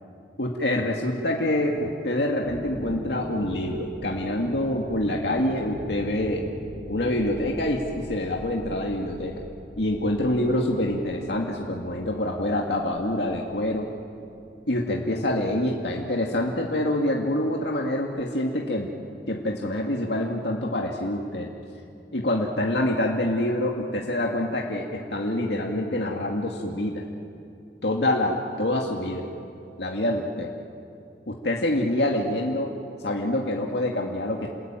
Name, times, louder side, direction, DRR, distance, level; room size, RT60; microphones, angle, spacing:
voice 1, 0.4-6.4 6.9-9.4 9.8-13.9 14.7-18.9 19.3-21.5 22.1-27.0 27.8-29.3 29.8-30.5 31.3-32.7 33.0-34.5, left 1 dB, 75° left, 0 dB, 2.1 m, -26 dB
sound 1, 2.4-16.1, equal, 30° right, 3.5 m, -43 dB
29.0 x 21.0 x 9.1 m, 2.6 s
head